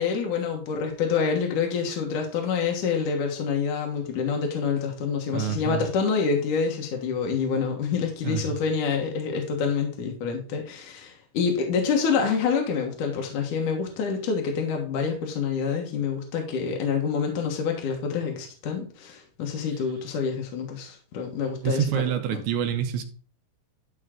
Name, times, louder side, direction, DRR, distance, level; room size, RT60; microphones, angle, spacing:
voice 1, 0.0-22.0 22.3-22.4, left 6 dB, 70° left, 2.8 m, -27 dB
voice 2, 5.3-5.9 8.2-8.4 21.6-23.0, right 9 dB, 70° right, 2.0 m, -27 dB
11.5 x 5.6 x 3.7 m
omnidirectional pair, 3.9 m